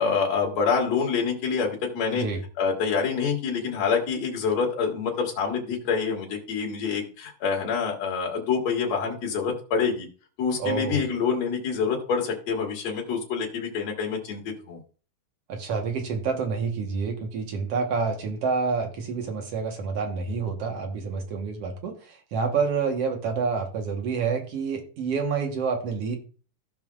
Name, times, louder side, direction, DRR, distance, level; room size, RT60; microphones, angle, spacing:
voice 1, 0.0-2.3 2.6-10.1 10.4-14.8, left 5 dB, 60° left, -1 dB, 3.1 m, -26 dB
voice 2, 10.6-11.0 15.5-26.2, right 5 dB, 60° right, 3 dB, 2.0 m, -28 dB
16.0 x 5.6 x 2.4 m, 0.38 s
omnidirectional pair, 3.6 m